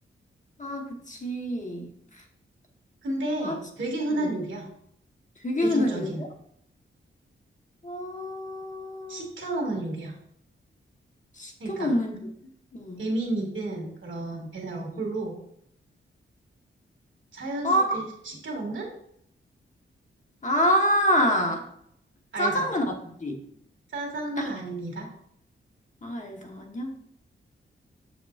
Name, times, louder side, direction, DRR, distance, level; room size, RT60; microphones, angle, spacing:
voice 1, 0.6-1.9 3.4-3.5 4.2-4.3 5.4-6.1 7.8-9.2 11.4-12.1 12.7-13.0 17.6-18.0 20.4-21.7 22.4-22.8 23.2-23.4 24.4-24.5 26.0-26.9, equal, 35° left, 2 dB, 1.2 m, -26 dB
voice 2, 3.0-4.6 5.6-6.2 9.1-10.1 11.6-12.0 13.0-15.4 17.3-18.9 22.3-22.7 23.9-25.1, right 2 dB, 65° right, -1 dB, 2.0 m, -31 dB
7.8 x 5.0 x 2.4 m, 0.71 s
cardioid pair, 85°, 21 cm